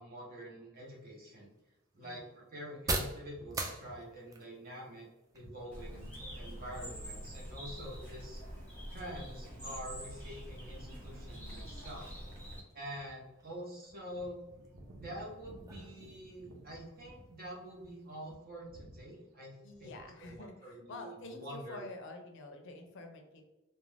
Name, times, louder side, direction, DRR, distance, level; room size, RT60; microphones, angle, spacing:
voice 1, 0.0-1.5 1.9-5.1 5.3-6.1 6.4-8.4 8.9-12.1 12.7-14.4 14.9-19.9 20.2-21.8, equal, 45° right, -3 dB, 0.8 m, -46 dB
sound 1, 0.7-18.3, right 2 dB, 15° right, 0.3 m, -47 dB
voice 2, 2.0-2.3 19.6-23.4, left 2 dB, 60° left, 4 dB, 0.5 m, -48 dB
sound 2, 3.1-4.3 5.3-7.0 7.6-7.9 8.3-17.9 18.3-19.1 19.7-20.4, right 1 dB, 90° right, 0.5 m, -57 dB
Bird, 5.7-12.6, equal, 10° left, 0.9 m, -45 dB
2.4 x 2.1 x 3.2 m, 1.0 s
head